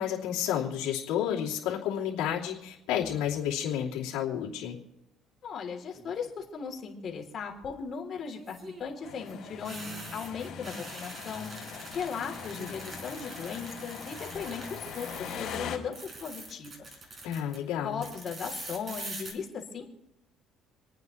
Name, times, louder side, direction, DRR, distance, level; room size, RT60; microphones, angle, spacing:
voice 1, 0.0-4.8 17.2-18.0, left 10 dB, 90° left, -4 dB, 2.9 m, -31 dB
voice 2, 5.4-11.5 11.9-16.7 17.8-19.9, left 6 dB, 45° left, 1 dB, 3.3 m, -37 dB
sound 1, 5.9-6.4 8.3-15.6 15.9-17.6 18.0-19.3, right 2 dB, 35° right, 4.5 m, -44 dB
sound 2, 9.0-15.8, left 7 dB, 60° left, 3.8 m, -42 dB
28.0 x 9.5 x 3.2 m, 0.88 s
cardioid pair, 115°, 0 cm